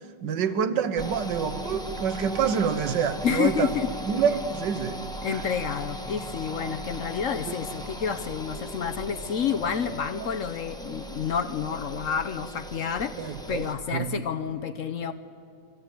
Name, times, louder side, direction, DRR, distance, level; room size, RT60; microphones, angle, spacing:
voice 1, 0.2-3.7 4.1-5.4 7.5-7.6 10.2-10.3 13.2-13.7 13.9-14.1, right 7 dB, 75° right, 9 dB, 1.7 m, -27 dB
sound 1, 1.0-13.8, equal, 5° left, 1.0 m, -38 dB
voice 2, 3.2-3.9 5.2-15.1, left 7 dB, 60° left, 9 dB, 0.9 m, -29 dB
24.5 x 15.0 x 9.1 m, 2.3 s
omnidirectional pair, 2.0 m